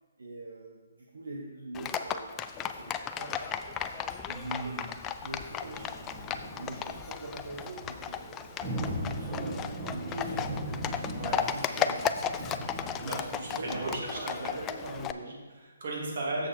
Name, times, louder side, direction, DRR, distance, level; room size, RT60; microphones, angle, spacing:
voice 1, 0.2-4.8 5.2-6.2 6.5-12.3 13.0-15.4, right 1 dB, 75° right, -1 dB, 1.0 m, -43 dB
Livestock farm animals working animals, 1.7-15.1, left 8 dB, 20° left, 0.3 m, -35 dB
voice 2, 4.3-4.8 11.1-11.5 13.0-14.6 15.2-16.5, right 2 dB, 55° right, -3 dB, 2.6 m, -36 dB
sound 1, 5.3-14.0, right 1 dB, 15° right, 1.5 m, -39 dB
7.1 x 6.6 x 4.3 m, 1.4 s
figure-of-eight pair, 140°, 0 cm